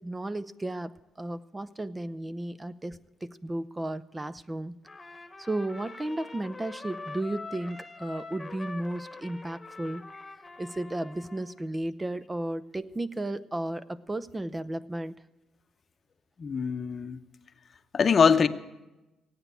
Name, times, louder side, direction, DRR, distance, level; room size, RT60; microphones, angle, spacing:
voice 1, 0.0-4.8 5.4-10.0 10.6-15.1, right 1 dB, 20° right, 0.5 m, -34 dB
Trumpet, 4.8-11.6, left 3 dB, 20° left, 1.3 m, -44 dB
voice 2, 16.4-17.2 17.9-18.5, left 6 dB, 45° left, 0.8 m, -22 dB
17.0 x 8.9 x 8.2 m
cardioid pair, 90°, 0 cm